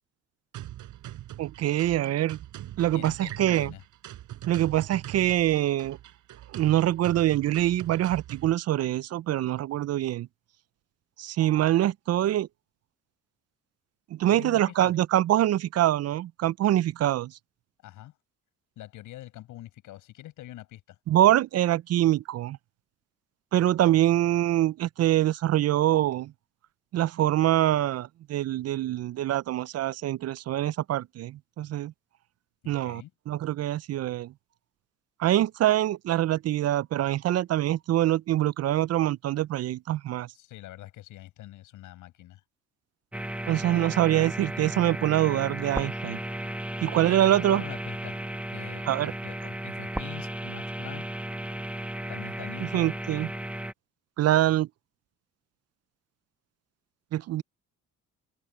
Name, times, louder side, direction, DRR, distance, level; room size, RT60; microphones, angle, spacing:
sound 1, 0.5-8.5, right 13 dB, 80° right, 4.9 m, -42 dB
voice 1, 1.4-2.4 2.8-3.7 4.5-6.0 6.5-10.3 11.2-12.5 14.2-17.3 21.1-22.6 23.5-26.3 26.9-31.9 32.7-34.3 35.2-40.3 43.5-46.2 46.8-47.6 48.9-49.1 52.7-53.3 54.2-54.7 57.1-57.4, right 13 dB, 55° right, 0.4 m, -24 dB
voice 2, 2.9-3.8 14.3-14.9 17.8-18.1 18.8-21.0 32.6-33.1 40.3-42.4 47.1-48.2 48.5-51.0 52.1-52.9, left 15 dB, 90° left, 6.8 m, -44 dB
sound 2, 43.1-53.7, right 1 dB, 5° right, 1.1 m, -34 dB
open air
cardioid pair, 90°, 30 cm